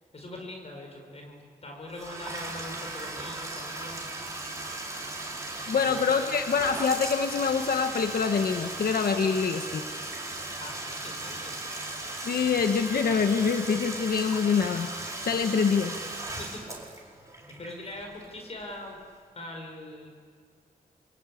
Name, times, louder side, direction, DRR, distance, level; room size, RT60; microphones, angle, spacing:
voice 1, 0.1-4.0 5.8-6.1 10.6-11.6 16.3-16.6 17.0-17.1 17.6-19.0 19.3-20.1, left 1 dB, 45° left, 2 dB, 5.3 m, -42 dB
Bathtub (filling or washing), 1.9-18.6, right 2 dB, 20° right, 4.8 m, -37 dB
voice 2, 5.7-10.0 12.2-14.9 15.2-16.0, left 6 dB, 80° left, 6 dB, 1.3 m, -25 dB
27.5 x 24.0 x 8.6 m, 2.1 s
wide cardioid pair, 125°, 15 cm